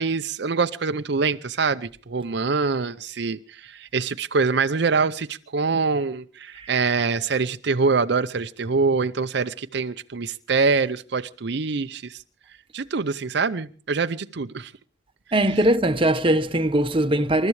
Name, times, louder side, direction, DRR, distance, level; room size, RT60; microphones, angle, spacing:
voice 1, 0.0-12.2 12.7-14.7, right 4 dB, 60° right, 0.6 m, -24 dB
voice 2, 15.3-17.5, right 1 dB, 30° right, 1.0 m, -20 dB
27.5 x 13.5 x 3.2 m
head